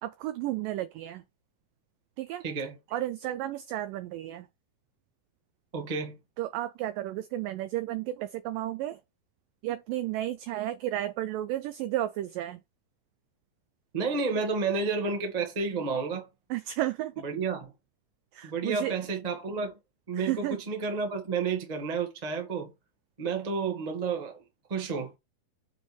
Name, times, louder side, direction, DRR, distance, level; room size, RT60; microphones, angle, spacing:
voice 1, 0.0-1.2 2.2-2.4 2.9-4.5 6.4-9.0 9.6-12.6 16.5-17.1 18.3-19.0 20.1-20.6, right 14 dB, 90° right, 1.9 m, -32 dB
voice 2, 2.4-2.8 5.7-6.2 13.9-16.3 17.2-17.7 18.4-19.7 20.1-22.7 23.2-24.4 24.7-25.1, right 4 dB, 50° right, 0.4 m, -31 dB
7.2 x 3.5 x 6.1 m
omnidirectional pair, 4.5 m